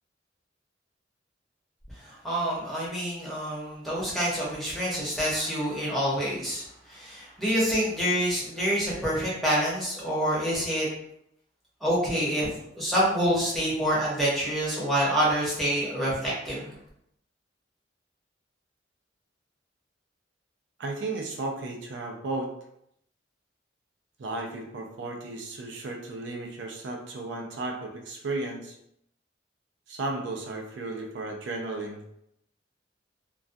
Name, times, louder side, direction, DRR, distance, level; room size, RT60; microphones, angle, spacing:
voice 1, 2.0-10.9 11.8-16.7, equal, ahead, -7 dB, 0.8 m, -27 dB
voice 2, 20.8-22.5 24.2-28.8 29.9-32.0, right 2 dB, 70° right, 1 dB, 0.4 m, -34 dB
2.3 x 2.2 x 2.5 m, 0.75 s
head